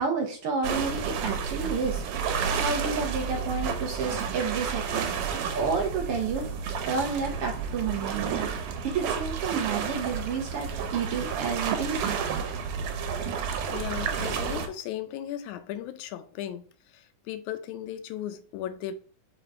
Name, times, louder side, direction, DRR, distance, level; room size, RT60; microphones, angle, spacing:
voice 1, 0.0-2.0 2.6-5.1 5.5-6.5 6.9-8.5 8.8-12.2, right 5 dB, 70° right, 1.4 m, -30 dB
sound 1, 0.6-14.7, right 6 dB, 85° right, 2.4 m, -31 dB
voice 2, 13.7-16.6 16.9-18.9, left 11 dB, 80° left, 1.9 m, -36 dB
5.2 x 3.9 x 4.7 m
omnidirectional pair, 3.5 m